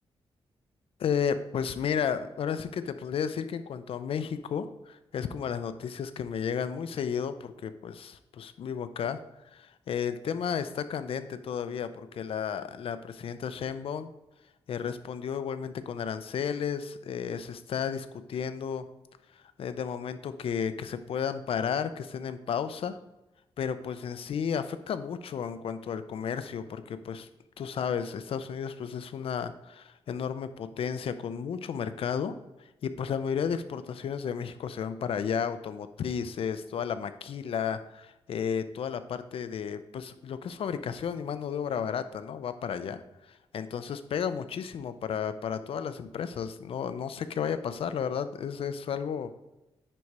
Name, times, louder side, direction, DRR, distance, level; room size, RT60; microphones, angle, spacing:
voice 1, 1.0-9.2 9.5-14.1 14.7-18.8 19.6-23.0 23.6-27.3 27.6-32.3 32.8-43.0 43.3-49.3, left 7 dB, 70° left, 11 dB, 0.6 m, -33 dB
9.9 x 4.2 x 4.7 m, 0.99 s
wide cardioid pair, 120°, 10 cm